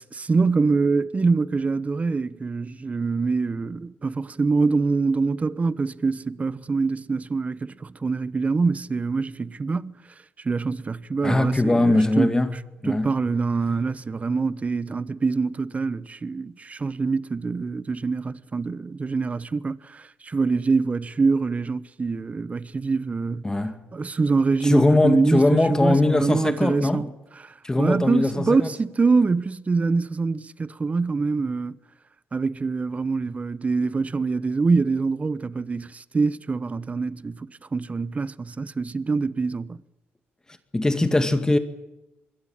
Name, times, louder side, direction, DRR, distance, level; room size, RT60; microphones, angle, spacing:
voice 1, 0.1-9.9 10.4-12.4 12.8-23.5 23.9-27.1 27.4-31.8 32.3-39.8, right 4 dB, 30° right, 1.1 m, -25 dB
voice 2, 11.2-12.5 12.8-13.1 23.4-23.8 24.6-27.0 27.6-28.7 40.7-41.6, left 2 dB, 15° left, 2.1 m, -21 dB
26.0 x 22.0 x 8.9 m
cardioid pair, 85°, 5 cm